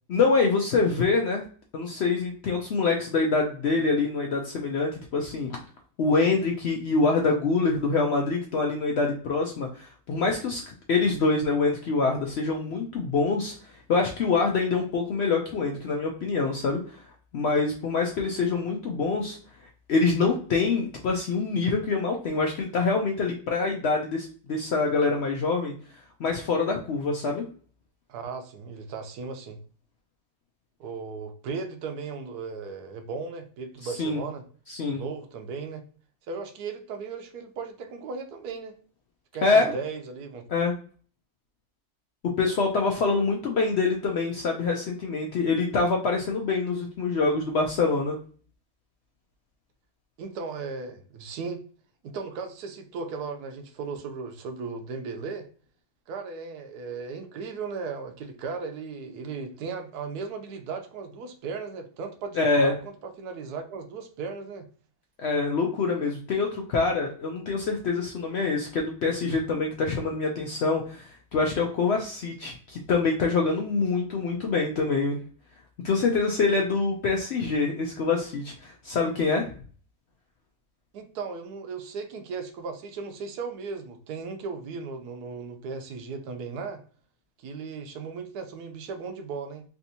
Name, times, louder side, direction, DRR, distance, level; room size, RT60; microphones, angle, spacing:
voice 1, 0.1-1.4 1.7-5.5 6.0-10.6 10.9-16.8 17.3-19.4 19.9-25.7 26.2-27.4 34.0-34.2 34.7-35.0 39.4-39.7 40.5-40.7 42.4-48.2 62.3-62.7 65.2-75.2 75.8-79.5, left 4 dB, 70° left, 0.6 m, -25 dB
voice 2, 28.1-29.6 30.8-34.4 34.9-35.8 36.3-38.7 39.3-40.4 50.2-51.7 52.0-55.5 56.1-64.7 80.9-86.8 87.4-89.6, right 5 dB, 85° right, 1.2 m, -36 dB
3.4 x 2.8 x 2.7 m
omnidirectional pair, 1.6 m